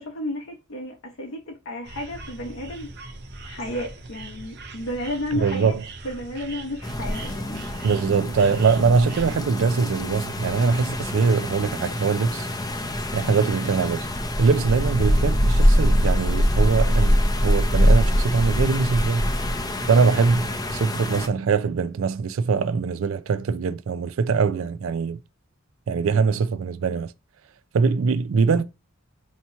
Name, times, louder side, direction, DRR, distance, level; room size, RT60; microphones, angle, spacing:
voice 1, 0.0-2.9 3.4-5.8 6.0-7.7 10.7-10.8, left 1 dB, 70° left, 0.8 m, -32 dB
sound 1, 1.8-9.4, right 3 dB, 55° right, 0.7 m, -40 dB
voice 2, 5.3-5.8 7.8-12.5 13.1-14.1 14.4-19.3 19.9-25.2 25.9-27.1 27.7-28.6, right 5 dB, 75° right, 0.4 m, -22 dB
sound 2, 6.8-21.3, equal, 20° left, 0.5 m, -23 dB
2.8 x 2.8 x 4.4 m
head